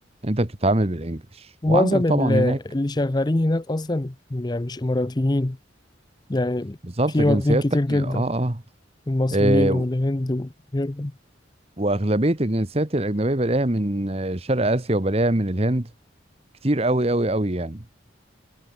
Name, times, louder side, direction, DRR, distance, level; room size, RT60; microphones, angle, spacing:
voice 1, 0.2-1.2 1.7-2.6 7.0-7.6 7.9-8.6 9.3-9.8 11.8-15.9 16.6-17.8, right 1 dB, 30° right, 1.3 m, -23 dB
voice 2, 1.6-5.6 6.3-6.8 7.1-8.3 9.1-11.1, left 1 dB, 20° left, 0.6 m, -23 dB
head